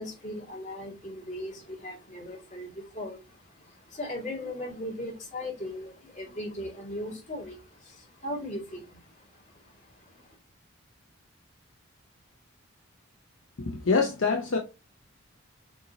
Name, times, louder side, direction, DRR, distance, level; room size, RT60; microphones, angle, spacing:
voice 1, 0.0-10.3, left 1 dB, 35° left, 2.2 m, -39 dB
voice 2, 13.6-14.6, left 4 dB, 65° left, 0.7 m, -25 dB
6.8 x 2.8 x 2.8 m
head